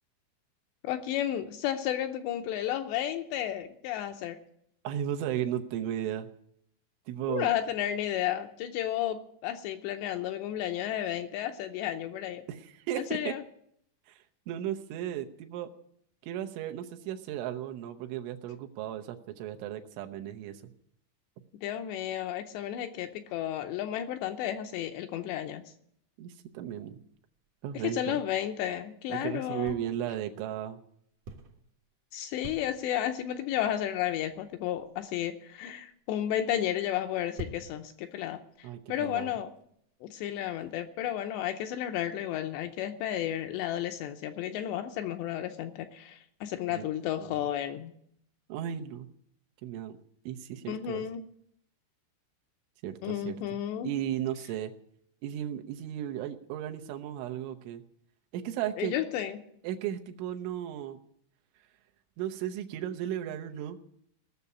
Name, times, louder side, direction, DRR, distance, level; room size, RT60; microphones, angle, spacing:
voice 1, 0.8-4.4 7.3-12.4 13.0-13.4 21.6-25.6 27.7-29.7 32.1-39.5 40.0-47.9 50.7-51.2 53.0-53.9 58.8-59.4, left 11 dB, 80° left, 6 dB, 2.7 m, -32 dB
voice 2, 4.8-6.3 7.1-7.5 12.5-13.3 14.1-15.7 16.2-20.6 26.2-27.0 27.6-28.2 29.1-30.8 38.6-39.3 46.7-46.8 47.2-47.4 48.5-49.1 49.6-50.0 50.3-51.0 52.8-53.4 53.8-54.7 55.2-57.8 58.3-58.9 59.6-61.0 62.2-63.8, right 11 dB, 85° right, 5 dB, 3.4 m, -35 dB
sound 1, 26.5-29.2 29.6-30.3 30.9-31.9 32.2-33.3 33.9-34.0 34.3-40.8, equal, 65° right, 2.0 m, -49 dB
17.5 x 6.9 x 9.6 m, 0.71 s
omnidirectional pair, 5.4 m